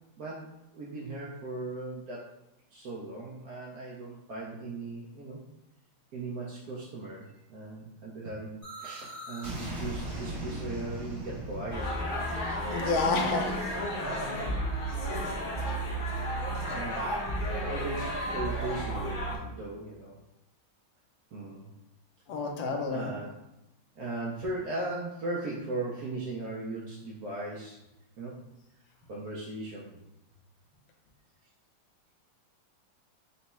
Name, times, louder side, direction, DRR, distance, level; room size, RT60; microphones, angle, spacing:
voice 1, 0.2-2.3 2.7-5.4 6.1-11.9 14.9-15.0 16.7-17.1 17.6-20.2 21.3-21.7 22.8-23.3 24.0-27.8 28.2-28.4 29.1-30.0, right 2 dB, 70° right, -5 dB, 0.9 m, -38 dB
sound 1, 8.6-14.3, right 1 dB, 35° right, 1.4 m, -40 dB
sound 2, 11.7-19.4, equal, 50° left, 0.6 m, -32 dB
voice 2, 12.7-13.5 22.3-23.1, left 3 dB, 70° left, 1 dB, 1.4 m, -29 dB
4.1 x 2.3 x 4.1 m, 0.89 s
omnidirectional pair, 2.3 m